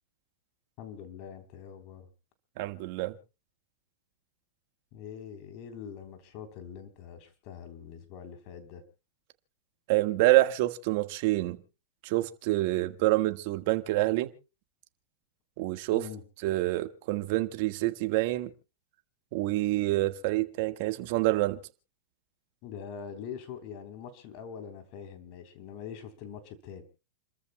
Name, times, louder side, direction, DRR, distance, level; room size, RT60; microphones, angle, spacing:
voice 1, 0.8-2.1 4.9-8.8 15.9-16.2 22.6-26.8, left 7 dB, 50° left, 3.4 m, -43 dB
voice 2, 2.6-3.2 9.9-11.6 12.0-14.3 15.6-16.0 16.4-18.5 19.3-21.6, right 18 dB, 55° right, 1.5 m, -27 dB
29.5 x 14.0 x 2.2 m
hypercardioid pair, 115°, 0 cm